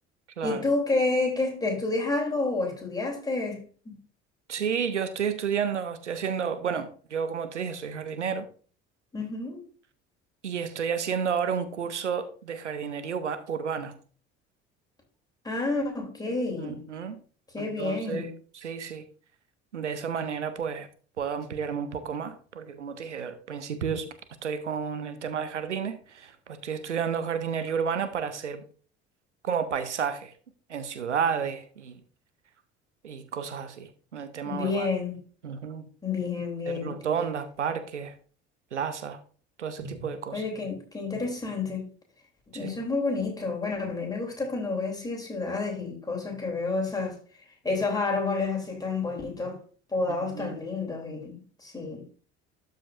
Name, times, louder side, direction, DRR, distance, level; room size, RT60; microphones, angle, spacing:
voice 1, 0.4-4.0 9.1-9.6 15.4-16.8 17.5-18.3 34.4-35.1 36.0-36.9 39.8-40.1 40.3-41.9 42.5-47.2 47.6-49.6 49.9-52.1, left 3 dB, 10° left, 3.0 m, -29 dB
voice 2, 4.5-8.5 10.4-14.0 16.6-17.2 17.6-19.1 19.7-20.9 21.2-24.1 24.4-28.6 29.4-30.3 30.7-32.0 33.0-34.9 35.4-35.8 36.7-38.2 38.7-39.2 39.6-40.4 42.5-42.8 50.1-50.6, right 7 dB, 80° right, 0.7 m, -31 dB
12.5 x 5.1 x 2.5 m
figure-of-eight pair, 60°, 35 cm